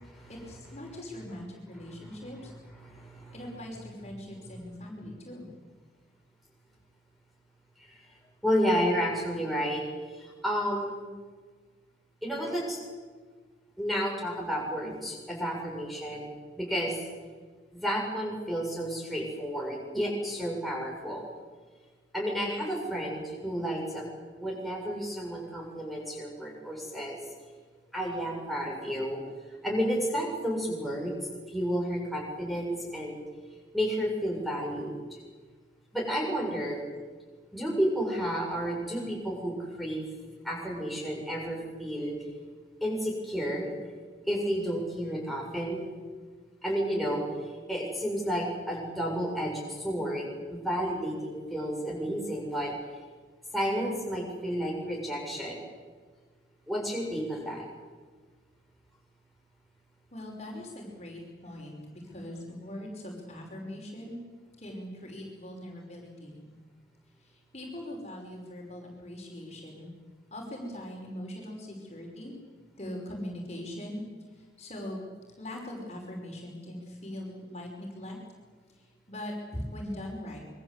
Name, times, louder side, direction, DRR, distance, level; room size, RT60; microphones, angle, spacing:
voice 1, 0.3-2.5 3.3-5.5 60.1-64.2 64.6-66.4 67.2-69.9 70.3-72.3 72.8-74.0 74.6-75.0 75.4-78.2 79.1-80.4, left 1 dB, 35° left, -1 dB, 5.5 m, -41 dB
voice 2, 2.8-3.4 4.7-4.8 8.4-9.8 10.1-11.0 12.2-12.8 13.8-16.3 16.6-17.0 17.7-21.3 22.1-24.0 24.4-27.2 27.9-29.2 29.6-31.1 31.5-33.2 33.7-34.9 35.9-36.8 37.5-40.0 40.4-42.2 42.8-43.7 44.3-45.8 46.6-47.2 47.7-52.7 53.5-55.6 56.7-57.6, equal, ahead, -3 dB, 7.1 m, -31 dB
26.5 x 24.0 x 8.2 m, 1.5 s
head